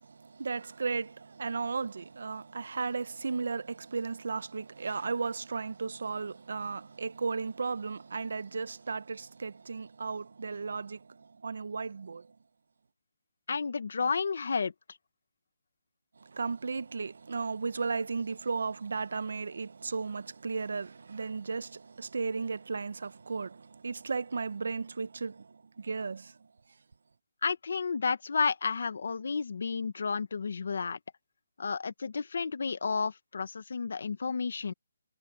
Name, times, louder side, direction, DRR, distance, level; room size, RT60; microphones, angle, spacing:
voice 1, 0.0-12.3 16.2-26.4, right 4 dB, 65° right, 1.1 m, -35 dB
voice 2, 13.5-14.7 27.4-31.0 31.6-34.7, left 5 dB, 60° left, 1.5 m, -31 dB
hypercardioid pair, 175°, 0 cm